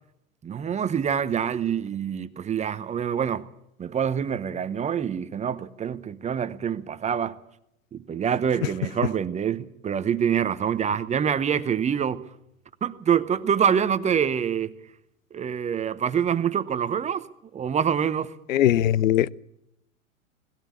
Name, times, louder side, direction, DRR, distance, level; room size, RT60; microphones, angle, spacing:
voice 1, 0.4-3.4 3.8-7.4 7.9-12.3 12.8-14.8 15.3-17.2 17.5-18.3, right 8 dB, 15° right, 0.8 m, -26 dB
voice 2, 18.5-19.3, left 12 dB, 70° left, 0.8 m, -20 dB
19.5 x 16.0 x 8.5 m
hypercardioid pair, 100°, 42 cm